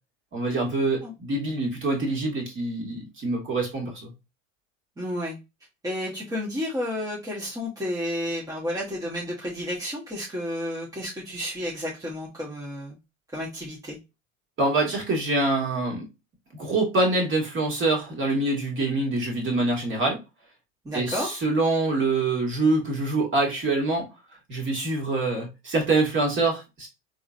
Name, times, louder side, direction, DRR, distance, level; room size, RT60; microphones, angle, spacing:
voice 1, 0.3-4.1 14.6-16.1 16.5-20.2 20.9-24.1 24.5-26.9, right 2 dB, 30° right, 1.8 m, -25 dB
voice 2, 5.0-5.4 5.8-13.0 13.3-14.0 20.8-21.3, left 1 dB, 10° right, 1.0 m, -31 dB
3.7 x 3.0 x 2.5 m
hypercardioid pair, 95°, 40 cm